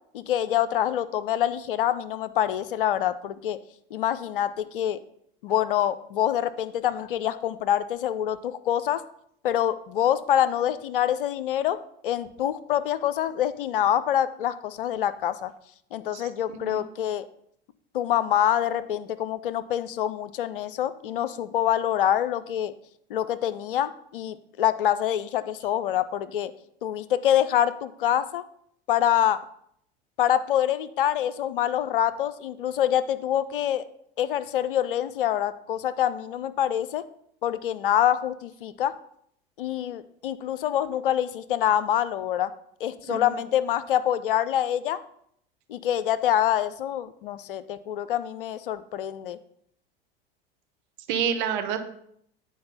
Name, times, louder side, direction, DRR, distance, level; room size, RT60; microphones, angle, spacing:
voice 1, 0.1-3.6 3.9-5.0 5.4-9.0 9.4-11.8 12.0-15.5 15.9-17.2 17.9-22.7 23.1-26.5 26.8-28.4 28.9-29.4 30.2-33.8 34.2-37.0 37.4-38.9 39.6-42.5 42.8-45.0 45.7-49.4, left 11 dB, 65° left, 14 dB, 0.5 m, -26 dB
voice 2, 16.1-16.8 43.1-43.2 51.1-51.8, right 8 dB, 55° right, 6 dB, 1.0 m, -29 dB
8.6 x 4.7 x 5.5 m, 0.68 s
figure-of-eight pair, 75°, 29 cm